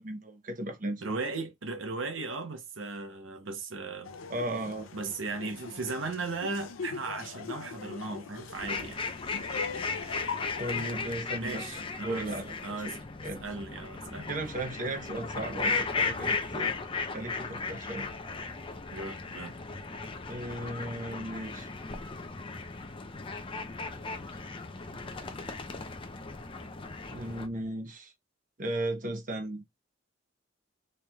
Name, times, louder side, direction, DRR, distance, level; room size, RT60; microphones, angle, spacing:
voice 1, 0.0-1.0 4.3-4.9 10.6-12.8 13.2-13.4 14.3-16.7 17.1-18.1 20.3-21.7 24.3-24.4 27.1-28.1 28.6-29.6, right 1 dB, 40° right, 0.9 m, -36 dB
voice 2, 1.0-4.2 4.9-9.0 9.4-9.5 11.4-12.3 12.6-13.0 13.4-14.3 18.9-19.6, right 3 dB, 75° right, 0.8 m, -37 dB
Laughter, 4.0-11.0, left 5 dB, 85° left, 0.5 m, -41 dB
sound 1, 8.5-27.5, left 4 dB, 25° left, 0.6 m, -36 dB
sound 2, 12.9-14.7 15.3-16.8 17.5-19.3 19.9-21.5 22.2-23.9 24.5-26.3 26.8-27.7, right 2 dB, 15° right, 0.5 m, -60 dB
4.2 x 3.2 x 2.3 m
head